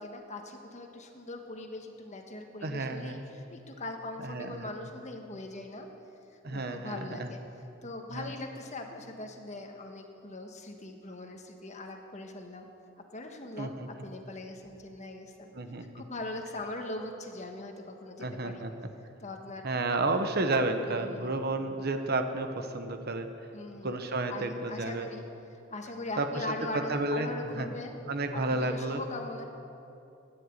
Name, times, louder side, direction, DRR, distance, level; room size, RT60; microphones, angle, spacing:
voice 1, 0.0-5.9 6.5-7.4 7.8-12.7 13.1-15.5 15.9-18.6 19.2-19.7 20.8-21.4 23.5-24.0 24.3-25.2 25.7-28.0 28.3-29.4, left 2 dB, 35° left, 4 dB, 1.3 m, -41 dB
voice 2, 2.6-3.2 4.2-4.7 6.4-7.3 8.1-8.3 13.6-13.9 15.5-15.9 18.2-18.9 19.6-23.3 23.8-25.1 26.2-26.4 26.9-27.3 27.6-27.7 28.1-29.0, right 2 dB, 55° right, 7 dB, 1.0 m, -31 dB
13.5 x 10.0 x 8.2 m, 2.8 s
head